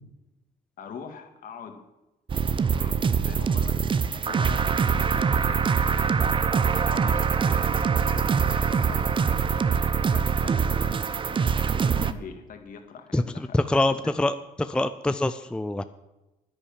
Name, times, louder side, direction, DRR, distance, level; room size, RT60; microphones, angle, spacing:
voice 1, 0.8-1.8 2.5-10.9 11.2-14.1, left 6 dB, 55° left, 6 dB, 2.0 m, -44 dB
sound 1, 2.3-12.1, right 6 dB, 30° right, 0.7 m, -24 dB
voice 2, 13.5-15.8, left 2 dB, 5° left, 11 dB, 0.4 m, -25 dB
10.0 x 10.0 x 7.3 m, 1.0 s
cardioid pair, 110°, 17 cm